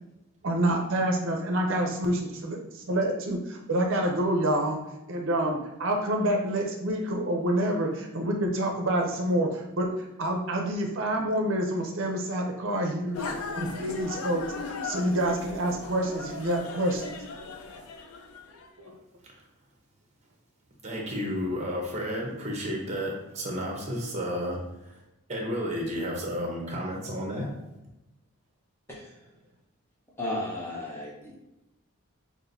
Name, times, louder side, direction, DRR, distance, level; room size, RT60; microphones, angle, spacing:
voice 1, 0.4-4.8 5.1-13.2 13.6-17.2 18.8-18.9, right 1 dB, 60° right, 2 dB, 0.6 m, -27 dB
sound 1, 13.1-18.7, left 4 dB, 80° left, 0.5 m, -38 dB
voice 2, 20.8-25.0 25.3-27.5, equal, 30° right, -1 dB, 0.9 m, -32 dB
voice 3, 28.9-29.2 30.2-31.4, left 1 dB, 10° left, -3 dB, 0.8 m, -34 dB
5.9 x 2.5 x 2.6 m, 0.95 s
head